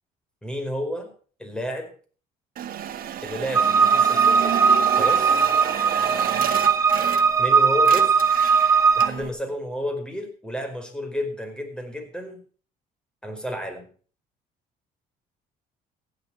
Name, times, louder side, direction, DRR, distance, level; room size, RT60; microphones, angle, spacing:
voice 1, 0.4-1.1 1.4-1.9 3.2-4.5 5.0-5.4 7.4-8.3 9.0-12.4 13.2-13.9, equal, 5° left, 5 dB, 4.9 m, -31 dB
sound 1, 2.6-7.5 7.8-9.3, right 10 dB, 60° right, 1.7 m, -31 dB
sound 2, 3.5-9.1, right 5 dB, 20° right, 1.8 m, -19 dB
15.5 x 11.0 x 4.9 m, 0.41 s
cardioid pair, 110°, 17 cm